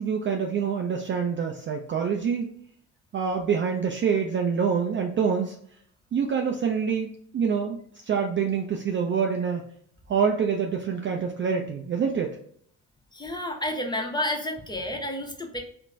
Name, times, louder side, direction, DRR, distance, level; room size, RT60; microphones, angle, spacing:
voice 1, 0.0-2.5 3.1-5.5 6.1-7.8 8.1-9.6 10.1-12.3, right 6 dB, 30° right, 2 dB, 0.4 m, -26 dB
voice 2, 13.1-15.6, left 1 dB, 10° left, 2 dB, 0.7 m, -30 dB
2.9 x 2.1 x 2.5 m, 0.64 s
hypercardioid pair, 45°, 41 cm